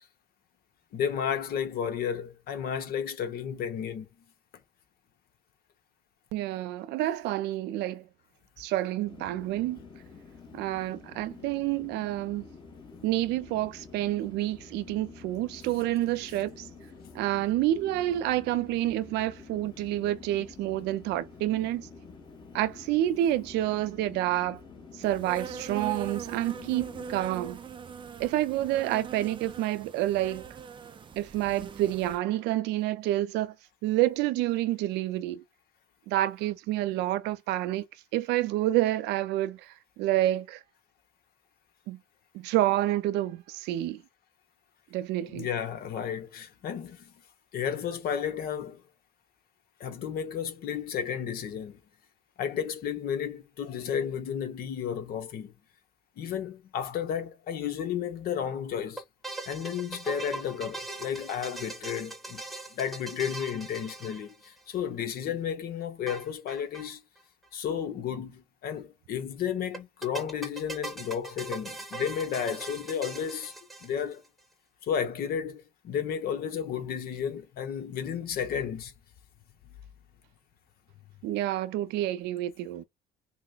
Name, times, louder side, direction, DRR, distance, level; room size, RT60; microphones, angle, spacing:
voice 1, 0.9-4.1 45.3-47.1 47.5-48.8 49.8-51.8 52.4-55.5 56.2-59.0 59.5-62.4 62.7-67.0 67.5-73.5 73.8-74.2 74.8-78.9, left 8 dB, 65° left, 1.0 m, -32 dB
voice 2, 6.3-8.1 8.6-9.8 10.5-12.4 13.0-16.7 17.1-21.9 22.5-24.6 24.9-27.6 28.2-30.5 31.2-33.5 33.8-35.4 36.1-37.8 38.1-40.6 41.9-42.0 42.3-44.0 44.9-45.5 81.2-82.8, right 14 dB, 90° right, 0.5 m, -28 dB
sound 1, 9.0-27.4, left 4 dB, 25° left, 1.1 m, -49 dB
Insect, 25.0-32.2, right 6 dB, 30° right, 0.5 m, -42 dB
sound 2, 59.0-64.7 66.1-66.9 67.2-67.3 67.4-67.5 69.7-74.3, right 2 dB, ahead, 1.0 m, -40 dB
5.9 x 2.1 x 2.4 m
cardioid pair, 110°, 17 cm